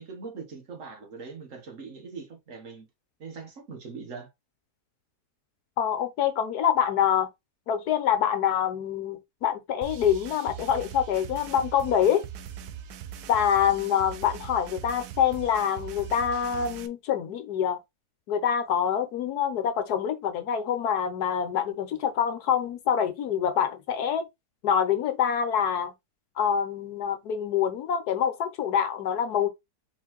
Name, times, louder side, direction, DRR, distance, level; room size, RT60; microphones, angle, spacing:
voice 1, 0.0-2.9 3.2-4.3, right 5 dB, 50° right, 1.4 m, -41 dB
voice 2, 5.8-7.3 7.7-12.2 13.3-17.8 18.3-24.2 24.6-25.9 26.4-29.5, left 8 dB, 70° left, 1.2 m, -26 dB
sound 1, 9.8-16.9, right 9 dB, 70° right, 1.1 m, -41 dB
4.5 x 3.8 x 3.0 m
omnidirectional pair, 1.8 m